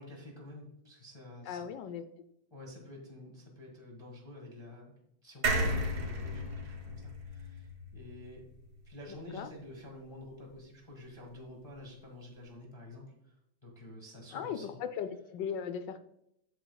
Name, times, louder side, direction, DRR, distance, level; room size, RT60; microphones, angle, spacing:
voice 1, 0.0-1.7 2.5-8.4 8.8-13.3 13.6-14.8, left 1 dB, 15° left, -2 dB, 1.3 m, -49 dB
voice 2, 1.4-2.0 9.3-9.5 14.3-16.0, left 7 dB, 75° left, 10 dB, 1.2 m, -37 dB
sound 1, 5.4-8.9 9.3-9.4 9.6-9.7, right 1 dB, 60° right, 2.1 m, -34 dB
8.7 x 6.8 x 2.2 m, 0.77 s
omnidirectional pair, 2.0 m